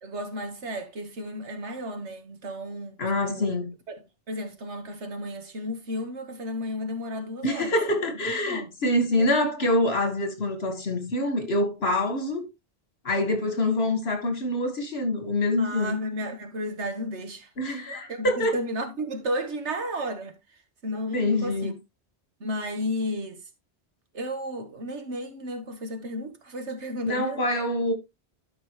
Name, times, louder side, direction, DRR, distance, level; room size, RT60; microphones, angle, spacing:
voice 1, 0.0-3.0 3.2-3.6 3.9-7.7 8.5-8.7 9.2-9.4 15.6-17.5 18.1-20.4 20.8-21.7 22.4-23.4 24.1-27.4, equal, 85° right, 1.7 m, -33 dB
voice 2, 3.0-3.7 7.4-12.5 13.0-16.0 17.6-18.6 21.1-21.8 27.0-27.9, left 1 dB, 65° left, 2.2 m, -25 dB
12.0 x 5.6 x 3.1 m
omnidirectional pair, 1.1 m